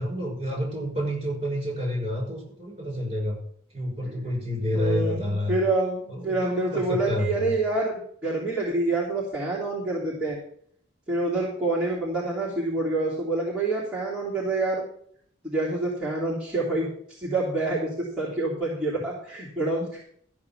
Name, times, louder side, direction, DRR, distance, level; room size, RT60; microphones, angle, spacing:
voice 1, 0.0-3.4 3.7-5.6 6.1-7.5, left 1 dB, 30° right, 0 dB, 5.6 m, -29 dB
voice 2, 4.0-4.5 4.7-10.4 11.1-14.8 15.4-20.0, right 2 dB, 5° right, -8 dB, 3.1 m, -27 dB
13.0 x 6.3 x 7.2 m, 0.63 s
head